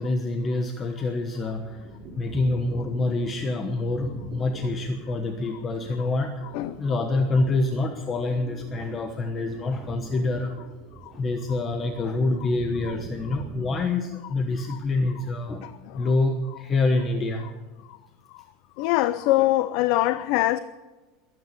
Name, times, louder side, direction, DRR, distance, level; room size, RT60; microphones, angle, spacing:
voice 1, 0.0-6.4 6.8-10.6 11.1-17.5, left 2 dB, 25° left, 1.1 m, -26 dB
sound 1, 1.1-13.7, right 3 dB, 35° right, 5.6 m, -44 dB
voice 2, 15.6-16.1 18.8-20.6, left 16 dB, 60° left, 0.5 m, -23 dB
22.0 x 9.5 x 6.9 m
supercardioid pair, 150°, 0 cm